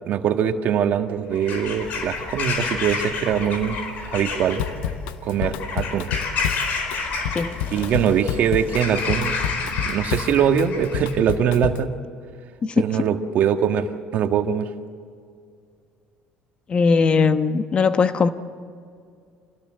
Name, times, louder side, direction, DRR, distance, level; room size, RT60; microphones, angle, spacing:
voice 1, 0.1-3.8 4.1-4.6 5.2-6.1 7.7-9.4 9.6-11.9 12.8-14.7, right 8 dB, 55° right, 6 dB, 1.6 m, -22 dB
Bird vocalization bird call bird song / Crow, 1.3-11.2, left 4 dB, 60° left, 4.5 m, -30 dB
Drum kit / Drum, 4.6-11.9, left 9 dB, 85° left, 1.0 m, -29 dB
voice 2, 12.6-13.0 16.7-18.3, left 5 dB, 35° left, 10 dB, 1.1 m, -19 dB
27.0 x 17.5 x 7.7 m, 2.3 s
supercardioid pair, 100°, 3 cm